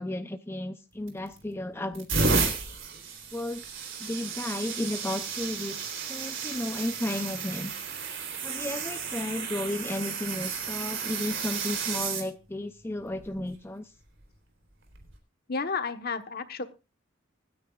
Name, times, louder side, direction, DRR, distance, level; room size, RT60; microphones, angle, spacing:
voice 1, 0.0-2.6 3.3-3.6 4.0-7.7 8.4-13.9, left 1 dB, 10° left, 8 dB, 0.5 m, -34 dB
sound 1, 1.1-1.4 1.9-12.3 13.1-13.4 14.9-15.1, right 4 dB, 65° right, 3.5 m, -32 dB
voice 2, 15.5-16.6, left 4 dB, 50° left, 9 dB, 1.2 m, -31 dB
25.5 x 9.5 x 2.4 m, 0.29 s
head